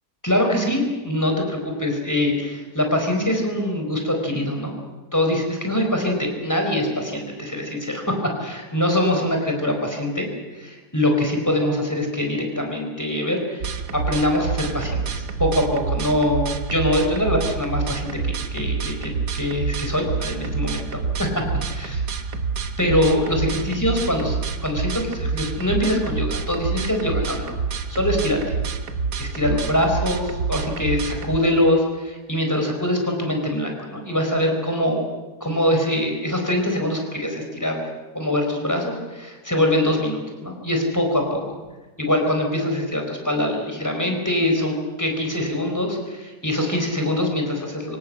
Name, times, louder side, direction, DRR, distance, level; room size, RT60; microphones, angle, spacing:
voice 1, 0.2-4.7 5.1-10.3 10.5-21.4 21.7-22.0 22.8-24.4 24.6-27.5 27.9-28.5 29.2-35.1 35.4-37.8 38.1-41.6 42.0-48.0, left 1 dB, 10° left, 2 dB, 4.5 m, -23 dB
sound 1, 13.6-31.4, right 5 dB, 80° right, 1.9 m, -27 dB
25.0 x 17.5 x 7.6 m, 1.2 s
omnidirectional pair, 1.7 m